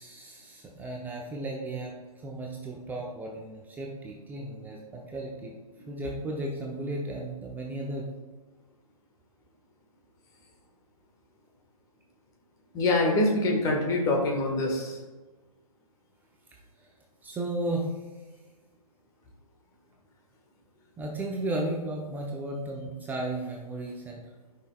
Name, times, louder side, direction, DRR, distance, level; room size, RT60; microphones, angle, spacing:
voice 1, 0.0-1.9 2.2-5.5 5.9-8.1 17.2-17.9 21.0-24.2, right 2 dB, 10° right, -1 dB, 0.6 m, -34 dB
voice 2, 12.7-15.0, left 2 dB, 20° left, 0 dB, 1.4 m, -25 dB
11.5 x 5.8 x 2.3 m, 1.3 s
figure-of-eight pair, 125°, 19 cm